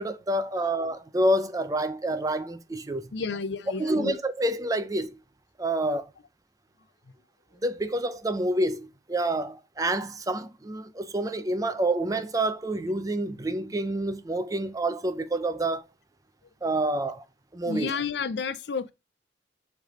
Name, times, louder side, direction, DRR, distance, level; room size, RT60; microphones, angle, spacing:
voice 1, 0.0-3.1 3.8-5.2 5.6-6.1 7.6-15.9 16.6-17.2 17.5-17.9, right 1 dB, 20° right, 0.5 m, -28 dB
voice 2, 3.1-4.2 17.6-18.9, left 5 dB, 70° left, 0.5 m, -31 dB
6.4 x 3.4 x 5.1 m
head